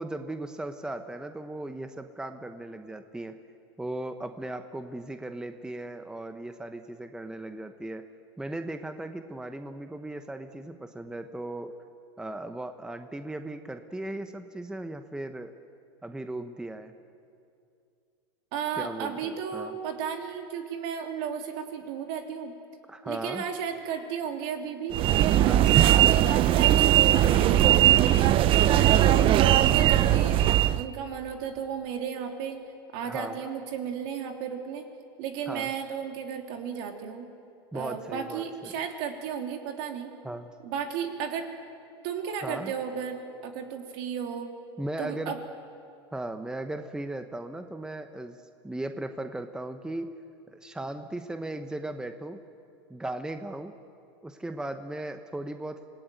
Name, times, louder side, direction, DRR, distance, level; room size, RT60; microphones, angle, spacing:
voice 1, 0.0-3.4 3.8-8.0 8.4-11.7 12.2-15.5 16.0-16.9 18.8-19.7 22.9-23.4 25.4-26.0 29.2-29.9 33.0-33.5 35.5-35.7 37.7-38.7 40.2-40.5 42.4-42.7 44.8-45.3 46.1-48.4 48.6-50.1 50.5-52.4 52.9-53.7 54.2-55.8, right 1 dB, 5° right, 7 dB, 1.0 m, -37 dB
voice 2, 18.5-22.5 23.0-24.9 25.4-28.8 29.3-30.4 30.7-32.6 32.9-34.8 35.2-37.3 37.7-40.1 40.6-41.5 42.0-44.5 45.0-45.4, right 7 dB, 60° right, 3 dB, 3.4 m, -34 dB
sound 1, 24.9-30.9, right 12 dB, 40° right, 0.7 m, -20 dB
26.5 x 18.0 x 9.2 m, 2.5 s
supercardioid pair, 115°, 14 cm